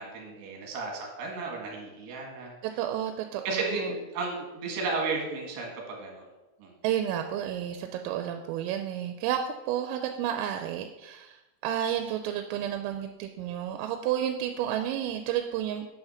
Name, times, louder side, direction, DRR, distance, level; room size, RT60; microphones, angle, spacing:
voice 1, 0.0-2.5 3.5-6.3 6.6-6.7, right 3 dB, 65° right, 0 dB, 3.7 m, -33 dB
voice 2, 2.6-3.9 6.8-15.9, right 10 dB, 90° right, 6 dB, 3.3 m, -31 dB
9.2 x 5.7 x 5.7 m, 1.0 s
omnidirectional pair, 5.9 m